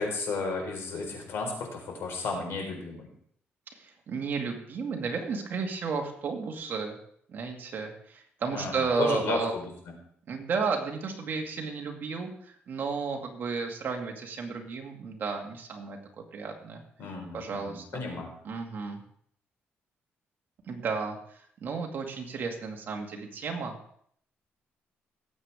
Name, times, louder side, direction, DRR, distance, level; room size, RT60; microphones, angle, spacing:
voice 1, 0.0-3.1 8.5-9.7 17.0-18.3, left 3 dB, 70° left, 1 dB, 4.6 m, -33 dB
voice 2, 3.8-7.0 7.3-9.6 10.3-16.0 16.3-16.8 17.3-18.0 18.4-19.0 20.7-23.8, right 5 dB, 50° right, 1 dB, 2.3 m, -33 dB
18.5 x 8.3 x 3.6 m, 0.64 s
cardioid pair, 140°, 4 cm